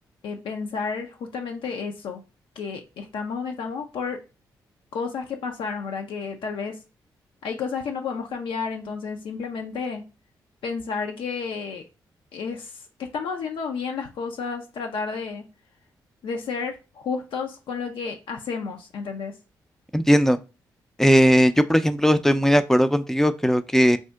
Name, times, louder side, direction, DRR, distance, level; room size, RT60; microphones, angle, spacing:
voice 1, 0.2-2.2 2.6-4.2 4.9-6.8 7.4-10.0 10.6-11.9 12.3-15.4 16.2-19.3, left 5 dB, 70° left, 3 dB, 0.5 m, -31 dB
voice 2, 19.9-20.4 21.0-24.0, equal, 5° left, 10 dB, 0.4 m, -18 dB
2.6 x 2.1 x 3.4 m, 0.31 s
supercardioid pair, 45°, 9 cm